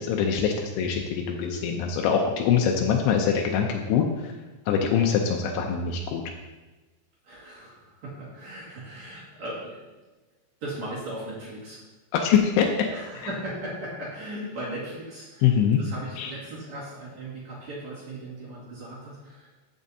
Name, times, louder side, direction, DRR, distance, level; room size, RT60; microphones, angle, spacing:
voice 1, 0.0-4.3 4.7-6.2 12.1-12.9 15.4-15.8 16.2-16.3, left 7 dB, 85° left, 2 dB, 2.3 m, -23 dB
voice 2, 7.2-9.9 10.6-11.8 12.9-19.5, right 1 dB, 50° right, -7 dB, 2.4 m, -38 dB
14.0 x 6.2 x 2.7 m, 1.2 s
omnidirectional pair, 5.4 m